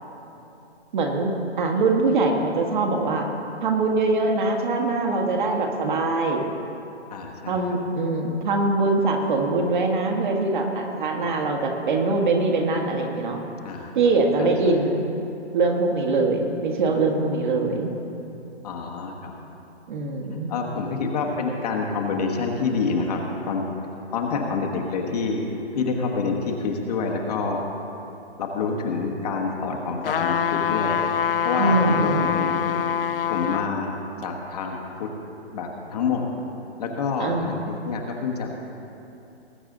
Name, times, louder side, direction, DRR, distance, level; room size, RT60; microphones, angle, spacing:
voice 1, 0.9-3.3 3.6-6.5 7.5-13.4 14.0-15.2 15.5-17.9 19.9-20.5 31.6-32.2 37.2-37.6, right 3 dB, 45° right, 2 dB, 1.7 m, -23 dB
voice 2, 7.1-7.6 13.6-13.9 14.4-14.8 18.6-19.3 20.5-23.7 24.1-27.6 28.4-32.8 33.3-35.1 35.5-36.2 36.8-38.5, left 4 dB, 35° left, 1 dB, 1.3 m, -27 dB
sound 1, 30.0-33.7 34.2-34.3, left 8 dB, 55° left, 0.4 m, -24 dB
20.0 x 8.6 x 3.9 m, 2.8 s
figure-of-eight pair, 145°, 34 cm